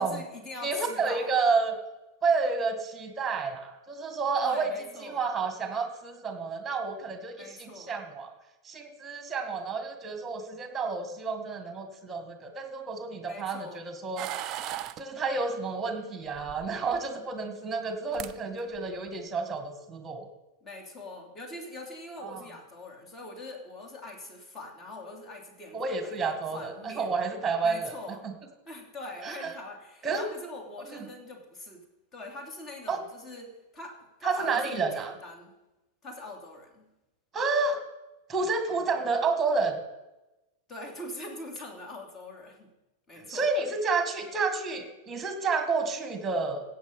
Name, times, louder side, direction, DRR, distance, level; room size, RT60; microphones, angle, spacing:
voice 1, 0.0-1.3 4.4-5.3 7.3-7.9 13.3-13.8 20.6-27.1 27.6-28.2 28.7-31.8 32.1-35.5 36.0-36.9 40.7-42.7 43.1-43.5, left 2 dB, 20° left, 1 dB, 3.2 m, -43 dB
voice 2, 0.6-1.8 2.2-4.7 5.0-8.3 8.6-14.3 14.7-20.3 22.2-22.4 25.7-27.9 29.2-29.5 30.0-30.3 30.9-31.0 32.9-33.0 34.2-35.1 37.3-37.8 38.3-39.8 43.3-46.6, right 4 dB, 15° right, 6 dB, 2.1 m, -30 dB
sound 1, 14.2-15.0 16.4-17.0 17.9-18.0 18.1-18.3 18.7-19.1, right 12 dB, 35° right, 0.6 m, -37 dB
15.5 x 8.2 x 5.5 m, 0.98 s
figure-of-eight pair, 90°, 0 cm